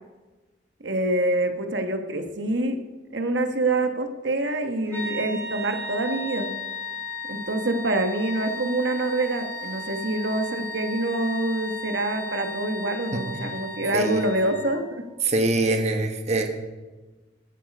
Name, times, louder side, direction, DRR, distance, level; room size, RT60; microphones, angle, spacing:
voice 1, 0.8-2.8 3.1-6.7 7.3-15.0, right 2 dB, 85° right, 6 dB, 1.2 m, -26 dB
sound 1, 4.9-14.9, left 2 dB, 15° left, 3.6 m, -35 dB
voice 2, 15.2-16.5, right 2 dB, 40° right, 4 dB, 1.3 m, -23 dB
16.5 x 8.2 x 5.3 m, 1.2 s
head